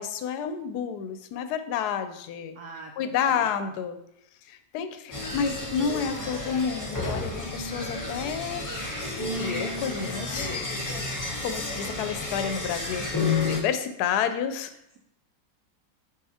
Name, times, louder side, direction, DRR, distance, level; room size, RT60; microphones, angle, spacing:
voice 1, 0.0-2.6 3.0-4.0 4.5-8.6 9.4-10.5 11.1-14.7, left 7 dB, 70° left, 9 dB, 1.0 m, -30 dB
voice 2, 2.5-3.5 13.0-13.3, right 4 dB, 70° right, 1 dB, 1.0 m, -44 dB
sound 1, 5.1-13.6, left 3 dB, 20° left, 0.5 m, -31 dB
7.4 x 4.6 x 2.8 m, 0.77 s
omnidirectional pair, 1.9 m